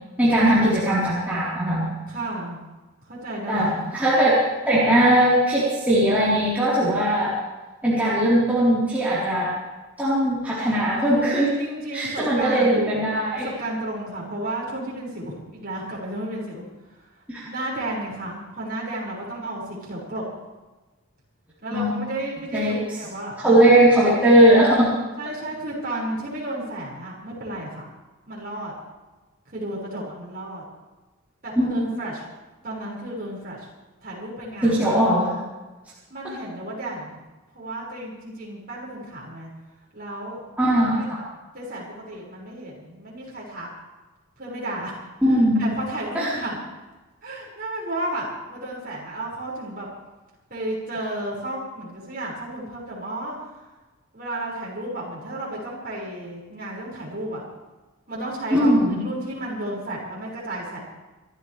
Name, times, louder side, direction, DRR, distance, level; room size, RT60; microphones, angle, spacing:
voice 1, 0.2-1.9 3.5-7.4 7.8-9.5 10.0-11.5 11.9-13.5 17.3-17.4 21.7-22.0 22.5-22.7 23.4-24.9 31.6-31.8 34.6-35.4 40.6-41.0 45.2-45.7 46.1-46.3 58.5-59.0, right 1 dB, 5° right, -11 dB, 4.1 m, -19 dB
voice 2, 2.1-2.6 3.1-3.9 11.6-12.8 13.4-16.6 16.9-17.0 17.4-20.2 21.6-23.6 24.0-24.1 25.2-27.9 28.3-28.7 29.5-30.6 31.4-32.2 32.6-33.6 34.0-34.8 36.1-37.2 37.5-39.5 39.9-40.4 40.7-41.1 41.5-43.7 44.4-46.6 47.2-49.9 50.5-53.4 54.1-57.4 58.1-60.8, right 1 dB, 40° right, -4 dB, 6.0 m, -33 dB
27.5 x 13.0 x 3.4 m, 1.2 s
head